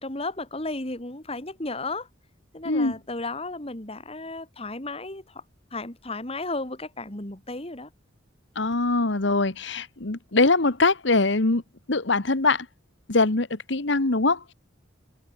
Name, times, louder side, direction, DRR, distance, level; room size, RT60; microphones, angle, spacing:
voice 1, 0.0-2.1 2.5-5.4 5.7-7.9, left 2 dB, 30° left, 2.7 m, -34 dB
voice 2, 8.5-11.6 11.9-12.7 13.1-14.4, left 3 dB, 65° left, 1.4 m, -22 dB
head